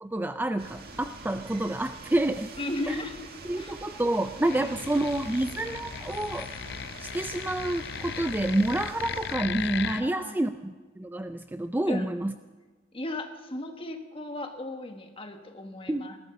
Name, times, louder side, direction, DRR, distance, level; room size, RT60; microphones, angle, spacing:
voice 1, 0.0-2.5 2.9-3.0 3.5-6.5 7.0-12.3 15.9-16.1, right 1 dB, 10° right, 9 dB, 0.4 m, -28 dB
sound 1, 0.6-9.4, right 3 dB, 50° right, 1.9 m, -45 dB
voice 2, 2.6-3.2 3.6-3.8 4.5-4.8 10.0-10.5 11.9-12.1 12.9-16.2, left 2 dB, 30° left, 5 dB, 1.5 m, -36 dB
sound 2, 4.4-10.0, left 8 dB, 60° left, 0.6 m, -37 dB
20.0 x 13.5 x 5.3 m, 1.4 s
head